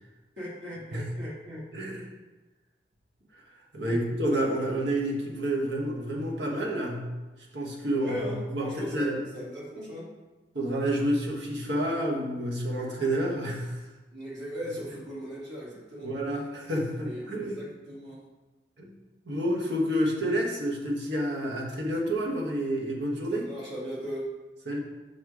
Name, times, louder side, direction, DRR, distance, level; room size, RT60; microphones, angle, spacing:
voice 1, 0.4-1.7 3.8-4.0 7.9-10.1 14.1-16.1 17.0-18.2 23.3-24.3, equal, 90° right, -6 dB, 2.1 m, -38 dB
voice 2, 1.7-2.0 3.3-3.4 3.7-7.1 7.5-9.2 10.5-13.8 16.0-17.6 18.8-18.9 19.2-23.5 24.7-24.8, right 1 dB, 70° right, -2 dB, 1.4 m, -29 dB
6.3 x 4.3 x 4.8 m, 1.1 s
head